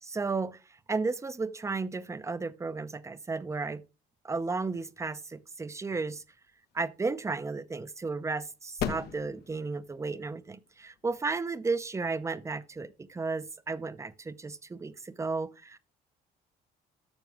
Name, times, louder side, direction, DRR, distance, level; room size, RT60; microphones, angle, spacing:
voice 1, 0.0-0.6 0.9-3.8 4.2-6.2 6.7-15.8, right 4 dB, 15° right, 0.7 m, -33 dB
sound 1, 6.3-13.5, left 8 dB, 70° left, 1.2 m, -42 dB
12.5 x 6.8 x 3.5 m
cardioid pair, 110°, 17 cm